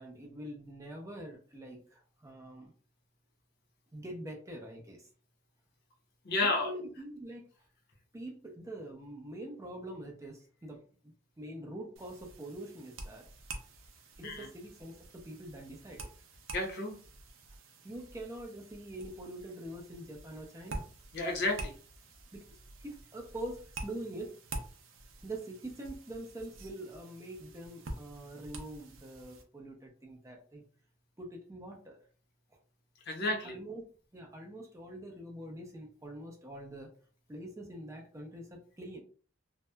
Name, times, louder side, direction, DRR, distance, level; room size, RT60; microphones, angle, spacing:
voice 1, 0.0-2.7 3.9-5.1 6.4-7.4 8.1-10.8 11.4-13.3 14.2-16.1 17.8-20.9 22.3-22.5 22.8-24.4 25.2-30.6 31.2-32.0 33.3-33.8 34.1-36.9 37.3-39.0, right 1 dB, 15° right, 1 dB, 0.5 m, -44 dB
voice 2, 6.2-6.7 14.2-14.5 16.5-17.0 21.1-21.7 33.1-33.5, left 2 dB, 55° left, 2 dB, 0.7 m, -31 dB
sound 1, 12.0-29.4, right 2 dB, 85° right, 0.5 m, -48 dB
2.7 x 2.1 x 2.2 m, 0.41 s
head